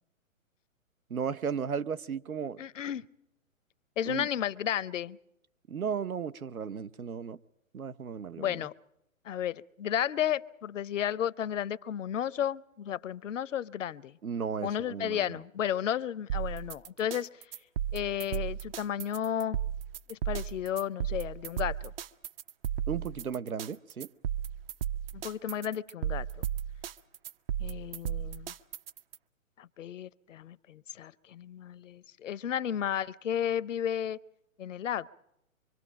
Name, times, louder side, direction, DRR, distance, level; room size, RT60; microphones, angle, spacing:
voice 1, 1.1-2.6 4.1-4.3 5.7-7.4 7.7-8.6 14.2-15.2 22.9-24.1, right 7 dB, 85° right, 0.8 m, -35 dB
voice 2, 2.6-3.1 4.0-5.2 8.4-8.7 9.2-14.2 14.6-17.3 17.9-19.6 20.1-21.9 25.1-26.3 27.6-28.5 29.6-34.2 34.6-35.1, left 10 dB, 65° left, 0.7 m, -33 dB
sound 1, 16.3-29.2, right 10 dB, 45° right, 0.7 m, -35 dB
25.0 x 24.5 x 5.1 m
figure-of-eight pair, 125°, 42 cm